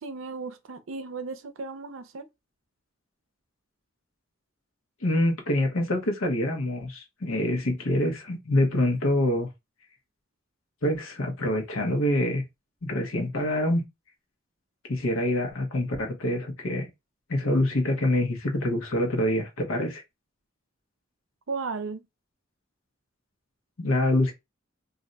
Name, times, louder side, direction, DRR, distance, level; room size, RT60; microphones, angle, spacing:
voice 1, 0.0-2.3 21.5-22.0, right 4 dB, 70° right, 0.5 m, -35 dB
voice 2, 5.0-9.5 10.8-12.4 12.8-13.8 14.9-16.9 17.3-20.0 23.8-24.3, left 1 dB, 80° left, 0.9 m, -25 dB
2.6 x 2.2 x 3.8 m
head